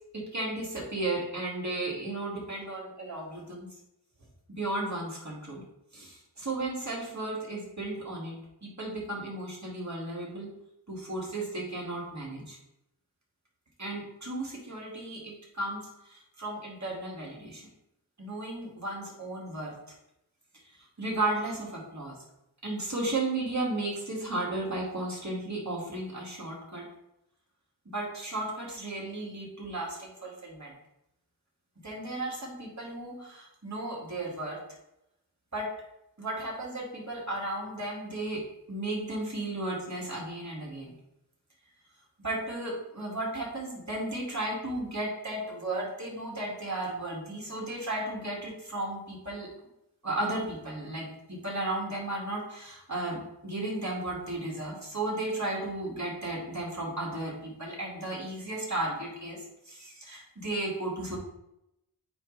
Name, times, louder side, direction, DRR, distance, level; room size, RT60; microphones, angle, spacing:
voice 1, 0.1-3.7 4.5-5.6 5.9-10.5 10.9-12.6 13.8-17.7 18.2-19.8 21.0-22.2 22.6-26.9 27.9-30.7 31.8-34.6 35.5-35.7 36.2-40.9 42.2-49.5 50.0-61.2, right 2 dB, 45° right, -3 dB, 2.3 m, -34 dB
8.6 x 3.2 x 4.0 m, 0.85 s
wide cardioid pair, 55°, 40 cm